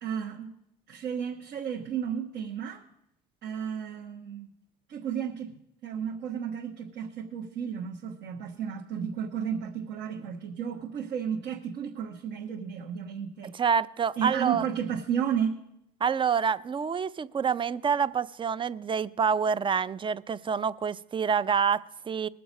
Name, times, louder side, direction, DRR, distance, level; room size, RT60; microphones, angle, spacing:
voice 1, 0.0-0.5 0.9-2.8 3.4-4.5 4.9-5.5 5.8-13.6 14.2-15.6, right 8 dB, 70° right, -1 dB, 1.2 m, -33 dB
voice 2, 13.5-14.6 16.0-22.3, right 6 dB, 25° right, 16 dB, 0.4 m, -27 dB
20.0 x 6.8 x 5.3 m, 0.81 s
supercardioid pair, 85°, 19 cm